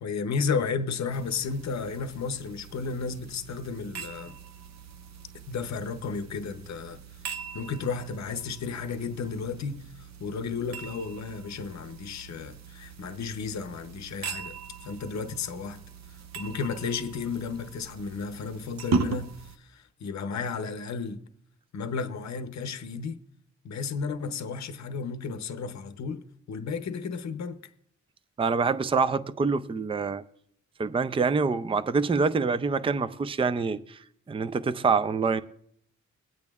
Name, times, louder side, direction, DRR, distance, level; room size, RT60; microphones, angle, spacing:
voice 1, 0.0-4.3 5.5-7.0 7.5-14.6 14.8-15.8 16.3-21.2 21.7-23.2 23.6-27.6, left 5 dB, 60° left, 0.7 m, -33 dB
sound 1, 1.1-19.6, right 4 dB, 60° right, 0.7 m, -39 dB
voice 2, 28.4-30.2 30.8-34.0 34.3-35.4, right 4 dB, 20° right, 0.4 m, -26 dB
22.5 x 8.8 x 2.4 m
cardioid pair, 105°, 31 cm